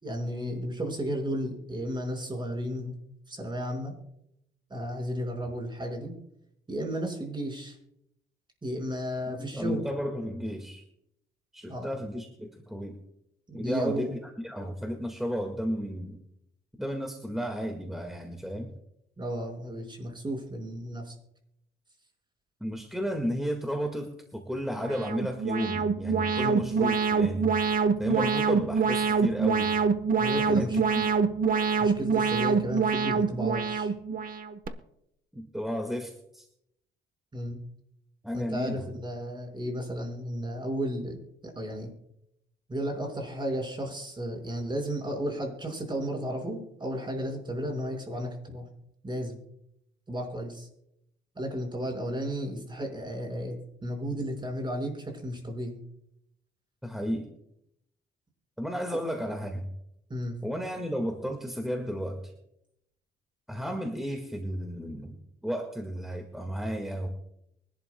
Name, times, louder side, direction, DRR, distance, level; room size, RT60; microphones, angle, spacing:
voice 1, 0.0-2.9 3.3-3.9 4.7-6.1 6.7-7.8 8.6-9.8 11.7-11.9 13.5-14.1 19.2-21.1 26.4-26.6 30.2-30.8 31.8-33.9 37.3-37.6 38.3-41.9 42.7-48.7 49.0-49.4 50.1-50.7 51.4-53.6 53.8-55.8 60.1-60.4, equal, 25° right, 2 dB, 5.3 m, -33 dB
voice 2, 9.3-10.8 11.5-13.0 13.5-14.1 14.4-16.2 16.8-18.7 22.6-27.5 28.0-29.8 30.4-30.7 31.0-31.1 35.3-36.5 38.2-38.9 56.8-57.3 58.6-59.7 60.4-62.2 63.5-67.1, equal, ahead, 3 dB, 1.8 m, -33 dB
Alarm, 24.8-34.7, right 5 dB, 45° right, 1.1 m, -26 dB
24.0 x 11.5 x 2.2 m, 0.79 s
cardioid pair, 90°, 20 cm